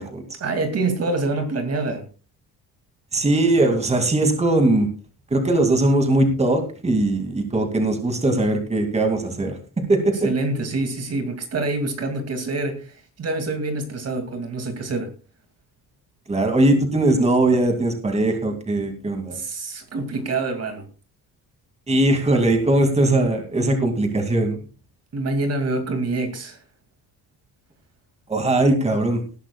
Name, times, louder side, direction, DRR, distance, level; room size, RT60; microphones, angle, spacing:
voice 1, 0.4-2.1 10.2-15.1 19.3-20.8 25.1-26.6, right 2 dB, 40° right, 2.4 m, -26 dB
voice 2, 3.1-4.9 5.3-9.5 9.9-10.3 16.3-19.4 21.9-24.6 28.3-29.2, right 2 dB, 15° right, 2.4 m, -20 dB
19.0 x 11.5 x 2.3 m
cardioid pair, 150°, 38 cm